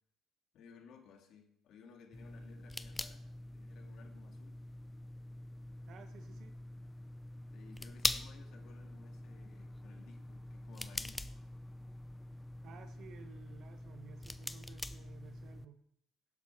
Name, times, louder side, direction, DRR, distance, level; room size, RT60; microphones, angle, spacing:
voice 1, 0.5-3.2 3.5-4.6 7.5-11.2, left 5 dB, 65° left, 3 dB, 2.5 m, -58 dB
sound 1, 2.1-15.7, left 1 dB, 15° left, 0.7 m, -44 dB
voice 2, 5.9-6.5 12.6-15.8, right 7 dB, 65° right, 6 dB, 1.4 m, -56 dB
18.0 x 7.9 x 4.6 m, 0.72 s
supercardioid pair, 85°, 0 cm